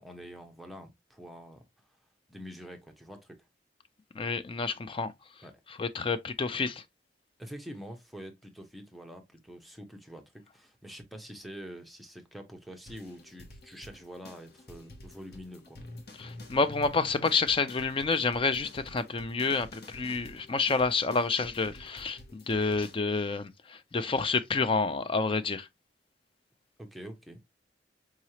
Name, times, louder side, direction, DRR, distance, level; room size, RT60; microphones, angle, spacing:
voice 1, 0.0-1.6 2.3-3.5 5.4-5.6 7.4-15.8 26.8-27.4, equal, ahead, 0.7 m, -46 dB
voice 2, 4.2-5.1 5.8-6.8 16.2-25.7, left 4 dB, 30° left, 0.4 m, -29 dB
sound 1, 12.9-22.9, left 1 dB, 60° left, 1.0 m, -49 dB
4.8 x 3.1 x 2.8 m
head